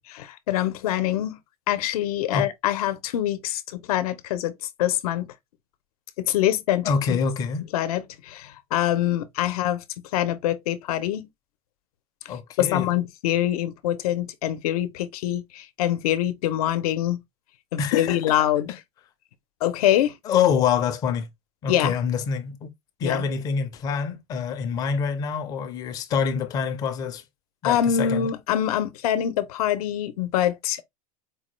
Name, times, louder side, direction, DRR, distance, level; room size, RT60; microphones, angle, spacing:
voice 1, 0.2-1.4 1.7-4.5 4.8-5.3 6.2-7.2 7.7-9.8 10.1-11.3 12.6-17.2 17.7-18.7 19.6-20.1 21.7-21.9 23.0-23.2 27.6-30.8, left 11 dB, 75° left, 0.6 m, -24 dB
voice 2, 6.9-7.6 12.3-12.9 17.8-18.2 20.3-21.3 21.6-22.7 23.0-27.2 27.6-28.3, left 6 dB, 20° left, 0.4 m, -25 dB
4.5 x 2.2 x 3.1 m
supercardioid pair, 170°, 19 cm